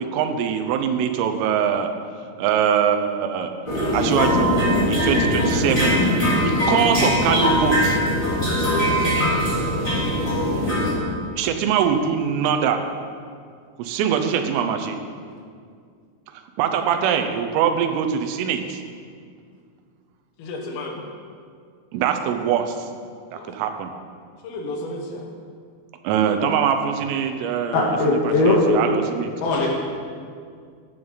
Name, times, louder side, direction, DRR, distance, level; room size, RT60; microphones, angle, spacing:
voice 1, 0.0-1.9 2.4-3.5 3.9-4.5 4.9-6.0 6.4-8.0 11.4-12.8 13.8-15.0 16.6-18.8 21.9-22.9 23.3-23.9 26.0-29.3, right 8 dB, 85° right, 6 dB, 3.5 m, -23 dB
voice 2, 3.7-4.1 8.6-9.0 20.4-21.1 23.3-23.5 24.4-25.3, left 3 dB, 85° left, 1 dB, 4.1 m, -31 dB
sound 1, 3.7-10.9, equal, 15° left, 2.2 m, -21 dB
voice 3, 27.7-28.8 29.4-29.7, left 2 dB, 60° left, -2 dB, 3.0 m, -19 dB
15.5 x 11.5 x 4.0 m, 2.1 s
omnidirectional pair, 5.7 m